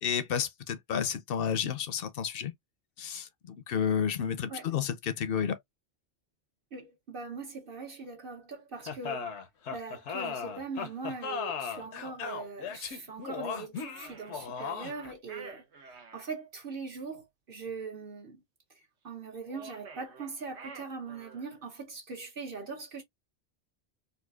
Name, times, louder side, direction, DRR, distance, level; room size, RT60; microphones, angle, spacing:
voice 1, 0.0-2.5 3.0-5.6, left 7 dB, 65° left, 0.7 m, -31 dB
voice 2, 6.7-9.3 9.7-15.6 16.1-18.4 18.7-23.0, right 4 dB, 55° right, 1.0 m, -41 dB
sound 1, 8.9-15.1, left 6 dB, 85° left, 1.0 m, -37 dB
sound 2, 13.8-16.3 19.4-21.6, right 4 dB, 80° right, 1.1 m, -49 dB
4.2 x 2.4 x 2.2 m
omnidirectional pair, 1.1 m